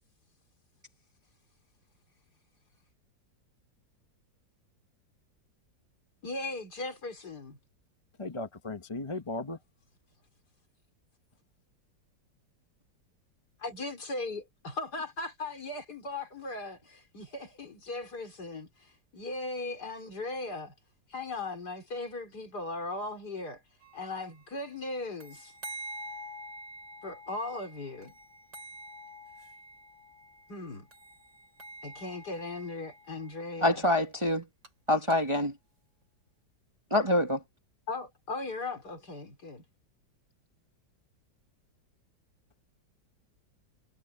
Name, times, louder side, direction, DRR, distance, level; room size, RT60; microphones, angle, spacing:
voice 1, 6.2-7.6 13.6-20.7 21.1-23.6 23.9-25.5 27.0-28.1 30.5-30.9 31.8-33.8 37.9-39.6, left 2 dB, 60° left, 4.4 m, -38 dB
voice 2, 8.2-9.6, left 2 dB, 20° left, 0.9 m, -36 dB
sound 1, 23.8-24.3 25.2-30.6 30.9-33.9 34.4-34.7 35.1-35.2, right 1 dB, 70° right, 5.9 m, -47 dB
voice 3, 33.6-34.4 34.9-35.5 36.9-37.4, left 1 dB, 15° right, 1.6 m, -25 dB
omnidirectional pair, 2.0 m